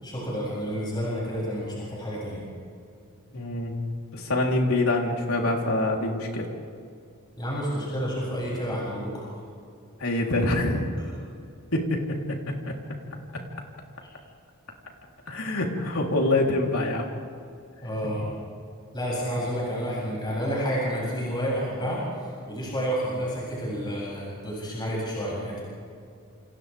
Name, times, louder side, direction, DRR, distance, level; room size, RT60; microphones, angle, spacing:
voice 1, 0.0-2.4 7.4-9.2 17.8-18.3 18.9-25.6, equal, 20° left, -6 dB, 7.7 m, -30 dB
voice 2, 3.3-3.8 4.1-6.5 10.0-11.0 11.7-12.0 15.3-17.1, left 2 dB, 85° left, 0 dB, 3.8 m, -25 dB
28.5 x 28.5 x 3.6 m, 2.4 s
head